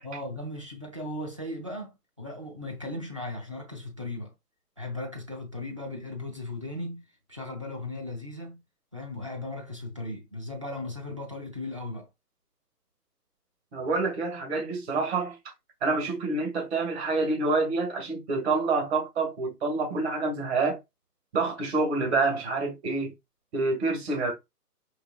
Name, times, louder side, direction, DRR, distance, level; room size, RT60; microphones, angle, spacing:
voice 1, 0.0-4.3 4.8-8.6 8.9-12.1, left 2 dB, 20° right, 0.4 m, -37 dB
voice 2, 13.7-15.4 15.8-20.8 21.3-23.1 23.5-24.3, right 3 dB, 40° right, 2.1 m, -27 dB
4.7 x 3.7 x 2.3 m
hypercardioid pair, 145°, 48 cm